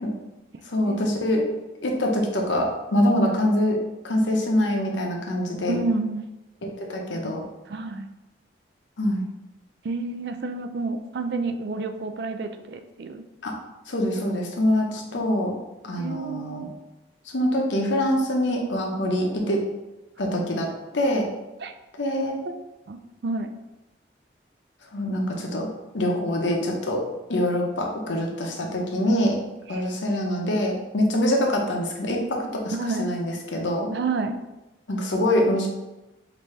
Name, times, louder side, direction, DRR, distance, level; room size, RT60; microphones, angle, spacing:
voice 1, 0.7-1.4 1.8-3.8 4.0-5.8 6.8-7.4 9.0-9.2 13.4-13.5 13.9-15.5 15.8-16.7 17.3-19.6 20.2-21.3 22.0-22.4 24.9-25.7 25.9-27.0 27.3-29.4 29.7-33.9 34.9-35.7, left 1 dB, 85° left, 1 dB, 0.8 m, -24 dB
voice 2, 5.7-6.3 7.7-8.1 9.8-13.2 14.2-14.4 15.0-15.1 16.0-16.7 21.6-21.7 22.5-22.6 22.9-23.5 29.7-29.9 32.7-33.1 33.9-34.4, right 3 dB, 60° right, 8 dB, 0.4 m, -30 dB
5.1 x 2.7 x 3.2 m, 1.0 s
head